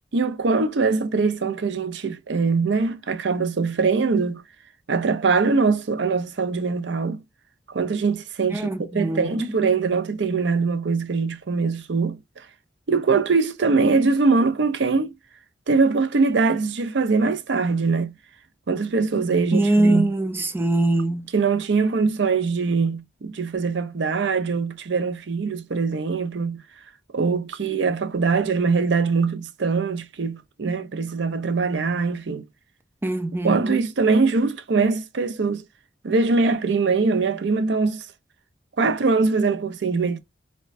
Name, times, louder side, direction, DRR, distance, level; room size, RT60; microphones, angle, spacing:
voice 1, 0.1-4.4 4.9-7.2 7.7-12.5 12.9-15.1 15.7-18.1 18.7-20.1 21.3-26.6 27.1-32.4 33.4-35.6 36.0-38.1 38.8-40.2, right 4 dB, 75° right, 0.5 m, -22 dB
voice 2, 8.5-9.5 19.5-21.3 33.0-33.8, right 2 dB, 10° right, 0.3 m, -22 dB
4.2 x 2.2 x 2.4 m
head